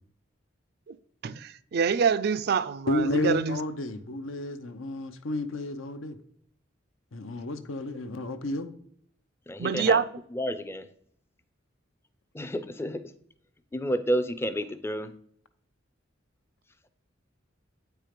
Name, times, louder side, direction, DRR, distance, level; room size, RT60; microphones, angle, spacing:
voice 1, 1.2-3.6 9.6-10.1, right 6 dB, 55° right, 0.4 m, -26 dB
voice 2, 2.9-6.2 7.1-8.7, left 1 dB, 85° left, 0.7 m, -31 dB
voice 3, 9.5-10.0 10.3-10.9 12.3-13.1 13.7-15.1, equal, 10° left, 0.4 m, -30 dB
8.4 x 4.6 x 5.1 m
head